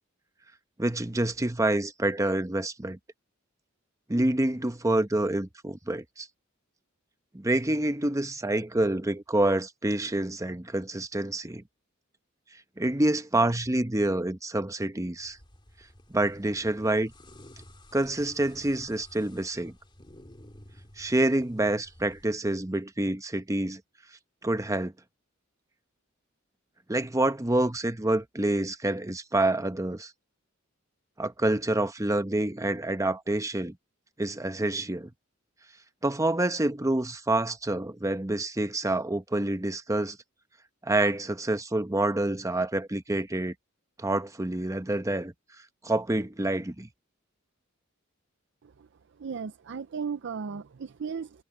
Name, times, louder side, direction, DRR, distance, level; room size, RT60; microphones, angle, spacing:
voice 1, 0.8-3.0 4.1-6.3 7.3-11.6 12.8-15.4 16.1-17.1 17.9-19.7 21.0-23.8 24.4-24.9 26.9-30.1 31.2-33.8 34.2-35.1 36.0-40.2 40.8-43.5 44.0-45.3 45.8-46.9, right 1 dB, 15° right, 0.9 m, -27 dB
sound 1, 15.1-22.2, left 1 dB, 25° left, 2.9 m, -53 dB
voice 2, 48.6-51.4, right 6 dB, 60° right, 0.5 m, -36 dB
head